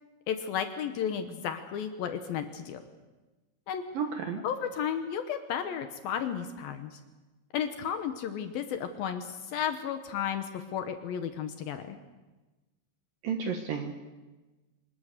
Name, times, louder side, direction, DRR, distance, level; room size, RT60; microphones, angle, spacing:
voice 1, 0.3-2.8 3.7-3.8 4.4-7.0 7.5-12.0, left 8 dB, 75° left, 8 dB, 2.2 m, -33 dB
voice 2, 3.9-4.4 13.2-14.0, right 6 dB, 65° right, 4 dB, 2.4 m, -32 dB
25.0 x 20.0 x 6.7 m, 1.2 s
omnidirectional pair, 5.6 m